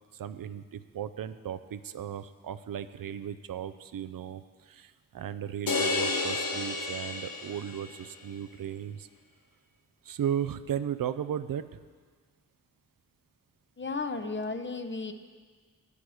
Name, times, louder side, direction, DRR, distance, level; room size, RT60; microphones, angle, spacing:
voice 1, 0.1-9.1 10.0-11.8, right 9 dB, 75° right, 12 dB, 0.5 m, -36 dB
sound 1, 5.7-8.0, left 3 dB, 75° left, 1.2 m, -31 dB
voice 2, 13.8-15.1, left 3 dB, 35° left, 8 dB, 0.8 m, -34 dB
9.8 x 8.4 x 6.3 m, 1.5 s
cardioid pair, 60°, 34 cm